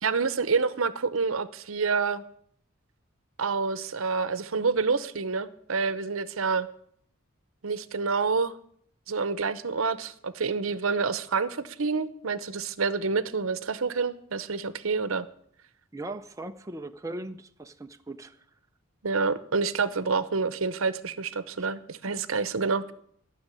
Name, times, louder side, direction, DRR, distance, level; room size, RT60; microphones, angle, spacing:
voice 1, 0.0-2.2 3.4-6.7 7.6-8.5 9.1-15.3 19.0-22.9, right 4 dB, 75° right, 14 dB, 0.8 m, -28 dB
voice 2, 15.9-18.4, right 2 dB, 15° right, 6 dB, 0.5 m, -39 dB
13.0 x 6.4 x 9.8 m, 0.67 s
head